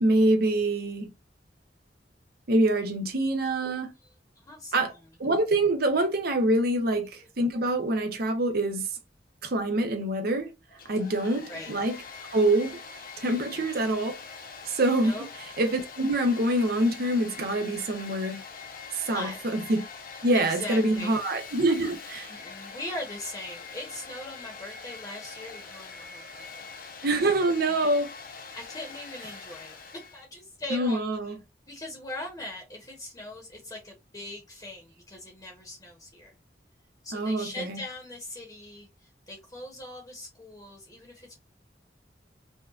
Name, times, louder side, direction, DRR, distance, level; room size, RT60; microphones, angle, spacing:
voice 1, 0.0-1.1 2.5-3.9 4.7-4.9 5.2-8.9 9.4-10.5 10.9-12.0 12.3-12.8 13.2-14.1 14.7-15.1 15.6-18.4 19.0-19.9 20.2-22.3 27.0-28.1 30.7-31.3 37.1-37.8, right 1 dB, 55° right, 0.7 m, -25 dB
voice 2, 4.3-5.1 11.5-11.7 13.3-13.7 15.0-15.3 19.0-19.4 20.1-21.2 22.3-26.7 27.2-27.3 27.7-27.9 28.5-31.0 31.7-36.4 37.0-41.3, left 1 dB, 20° left, 1.0 m, -41 dB
Domestic sounds home sounds, 10.7-30.2, left 5 dB, 55° left, 0.8 m, -44 dB
5.3 x 2.4 x 2.4 m
head